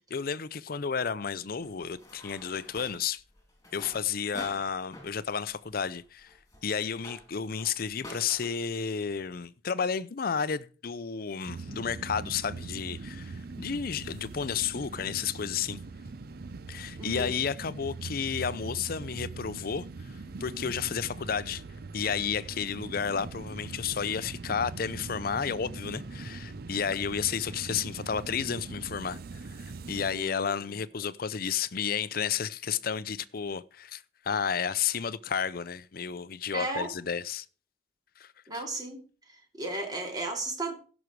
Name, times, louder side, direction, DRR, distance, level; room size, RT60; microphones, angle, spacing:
voice 1, 0.1-3.2 3.7-6.3 6.6-15.8 16.7-21.6 21.9-37.5 38.2-38.6, left 6 dB, 55° left, 0.6 m, -32 dB
sound 1, 1.6-8.5, left 1 dB, 20° left, 3.3 m, -48 dB
sound 2, 11.5-30.2, right 3 dB, 55° right, 0.6 m, -41 dB
voice 2, 17.0-17.4 30.1-30.7 36.5-36.9 38.5-39.0 39.6-40.7, right 2 dB, 20° right, 3.0 m, -34 dB
16.0 x 6.2 x 4.7 m
head